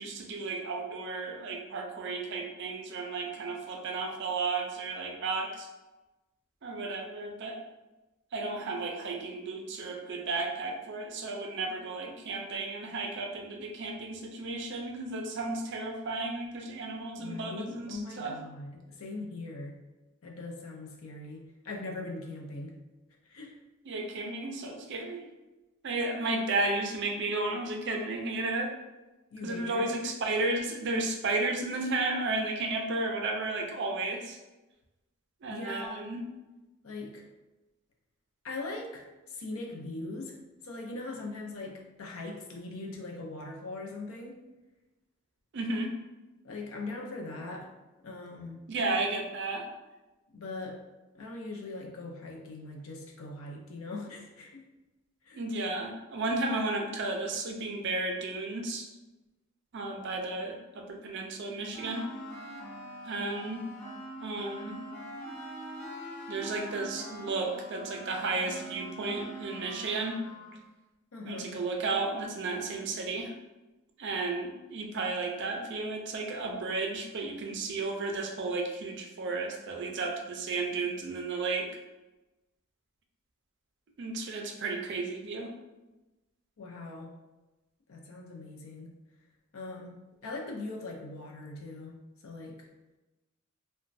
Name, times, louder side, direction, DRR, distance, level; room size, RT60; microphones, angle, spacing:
voice 1, 0.0-5.7 6.6-7.6 8.3-18.3 23.8-25.3 25.8-28.7 29.4-34.4 35.4-36.2 45.5-45.9 48.7-49.7 55.4-58.9 59.7-62.1 63.0-63.6 64.2-64.8 66.3-70.2 71.2-73.3 74.0-81.7 84.0-85.5, right 3 dB, 55° right, 2 dB, 0.4 m, -33 dB
voice 2, 17.2-19.8 20.2-22.8 23.3-23.6 29.3-30.1 35.5-36.1 36.8-37.3 38.4-40.4 40.6-44.4 46.4-47.7 48.0-48.7 50.3-50.8 51.1-54.7 55.2-55.4 71.1-71.6 86.6-87.2 87.9-89.0 89.5-92.7, left 2 dB, 70° left, 0 dB, 0.5 m, -41 dB
sound 1, 61.7-70.6, right 1 dB, 35° left, 1.3 m, -43 dB
3.0 x 2.2 x 2.6 m, 1.1 s
head